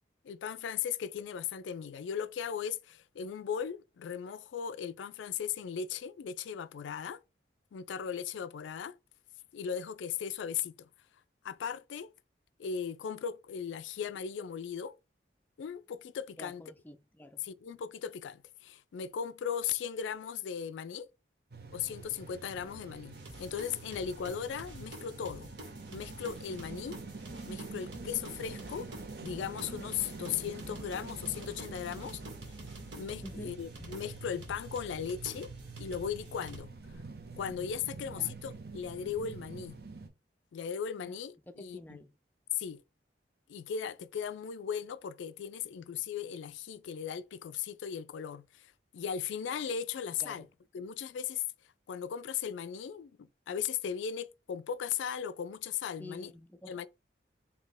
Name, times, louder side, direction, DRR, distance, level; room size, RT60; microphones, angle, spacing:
voice 1, 0.2-7.2 7.7-8.9 9.5-10.9 11.4-12.1 12.6-15.0 15.6-16.6 17.4-21.1 21.7-25.5 25.9-27.0 27.5-28.9 29.2-32.2 32.9-35.5 35.8-36.7 37.4-39.8 40.5-42.0 42.5-42.8 43.5-50.5 50.7-51.4 51.9-56.3 56.7-56.9, left 8 dB, 85° left, 0.3 m, -37 dB
voice 2, 16.4-17.5 33.2-33.6 38.0-38.3 41.0-41.2 41.5-42.2 50.2-50.5 56.0-56.9, left 1 dB, 10° left, 0.3 m, -48 dB
sound 1, 21.5-40.1, right 3 dB, 55° right, 0.7 m, -46 dB
sound 2, 23.1-36.6, right 1 dB, 90° right, 1.7 m, -50 dB
4.3 x 2.8 x 3.4 m
head